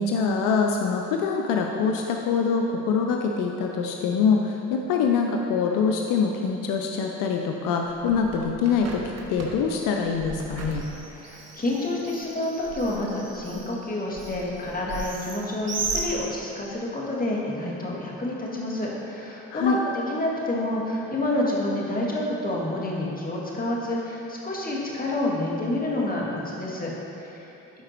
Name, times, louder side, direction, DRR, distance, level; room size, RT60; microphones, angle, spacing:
voice 1, 0.0-9.0 9.3-10.8 19.5-19.8, left 5 dB, 80° left, 2 dB, 0.7 m, -24 dB
Bird, 7.8-16.7, right 3 dB, 50° right, 1.5 m, -37 dB
voice 2, 11.1-26.9 27.2-27.5, left 1 dB, 25° left, -4 dB, 2.2 m, -28 dB
12.5 x 4.9 x 4.5 m, 2.9 s
supercardioid pair, 70°, 32 cm